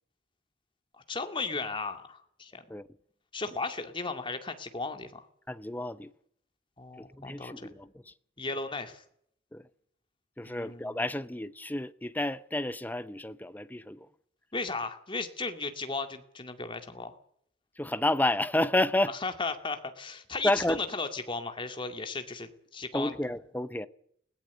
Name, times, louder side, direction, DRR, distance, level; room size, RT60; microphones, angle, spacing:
voice 1, 1.1-2.6 3.3-5.2 6.8-7.5 8.4-9.0 10.4-11.0 14.5-17.1 19.2-23.1, left 3 dB, 25° left, 2.2 m, -35 dB
voice 2, 5.5-6.1 7.0-8.1 9.5-9.6 10.4-14.1 17.8-19.1 20.4-20.8 22.9-23.9, left 1 dB, 10° left, 0.8 m, -30 dB
20.5 x 18.0 x 8.2 m
head